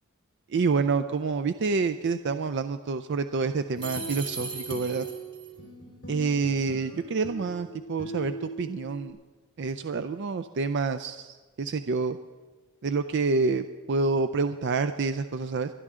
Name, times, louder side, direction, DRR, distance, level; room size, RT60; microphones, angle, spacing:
voice 1, 0.5-5.1 6.1-9.2 9.6-12.2 12.8-15.7, right 4 dB, 55° right, 9 dB, 0.4 m, -28 dB
sound 1, 3.8-9.1, right 2 dB, 55° left, 3.5 m, -40 dB
sound 2, 3.8-5.5, right 4 dB, 25° right, 1.8 m, -37 dB
23.0 x 11.0 x 3.7 m, 1.3 s
head